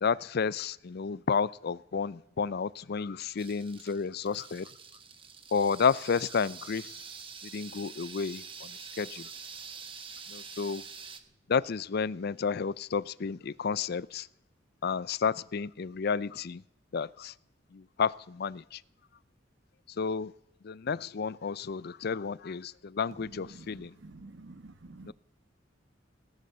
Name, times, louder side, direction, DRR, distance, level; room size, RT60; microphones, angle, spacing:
voice 1, 0.0-4.7 5.5-7.0 7.4-9.3 10.3-10.8 11.5-14.3 14.8-16.6 16.9-17.3 17.7-18.8 20.0-20.3 20.6-23.9 25.0-25.1, left 6 dB, 55° left, 20 dB, 0.5 m, -31 dB
sound 1, 3.4-11.2, right 6 dB, 30° right, 1.3 m, -46 dB
voice 2, 23.4-25.1, right 2 dB, 70° right, 12 dB, 1.1 m, -49 dB
18.5 x 11.5 x 6.7 m, 0.84 s
head